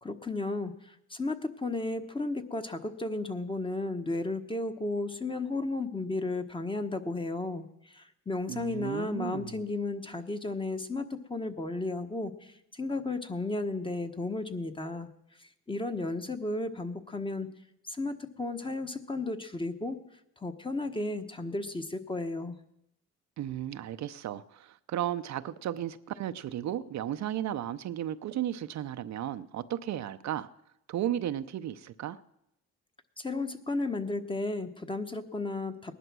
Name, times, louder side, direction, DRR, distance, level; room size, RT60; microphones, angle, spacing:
voice 1, 0.0-15.1 15.7-17.5 17.8-20.0 20.4-22.6 33.2-35.9, left 2 dB, 15° left, 1.3 m, -34 dB
voice 2, 8.5-9.6 23.4-30.5 30.9-32.2, right 11 dB, 65° right, 0.7 m, -34 dB
19.5 x 11.0 x 6.2 m
cardioid pair, 90°, 30 cm